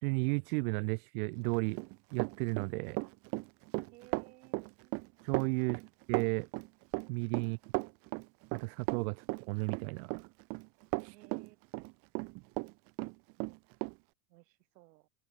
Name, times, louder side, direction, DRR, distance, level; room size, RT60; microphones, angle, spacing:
voice 1, 0.0-1.8 2.1-3.0 5.2-5.8 6.1-6.5 7.1-7.6 8.5-10.3 11.0-11.1, right 30 dB, 60° right, 1.4 m, -33 dB
Run, 1.5-12.7 13.0-13.9, right 31 dB, 30° right, 0.4 m, -36 dB
voice 2, 3.9-5.0 5.6-5.8 11.1-11.8 13.4-13.8 14.3-15.1, right 18 dB, 90° right, 4.9 m, -60 dB
open air
supercardioid pair, 165°, 48 cm